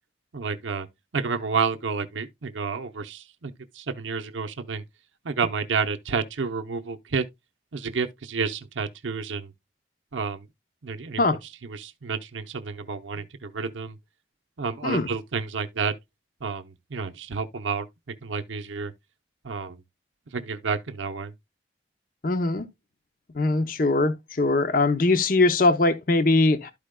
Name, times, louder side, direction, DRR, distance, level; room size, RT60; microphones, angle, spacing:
voice 1, 0.3-0.9 1.1-4.8 5.2-7.2 7.7-9.5 10.1-10.5 10.8-14.0 14.6-15.9 16.4-17.9 18.2-18.9 19.4-19.8 20.3-21.3, right 5 dB, 90° right, 0.7 m, -30 dB
voice 2, 22.2-22.7 23.4-26.7, left 2 dB, 50° left, 0.7 m, -21 dB
12.5 x 5.0 x 2.2 m
head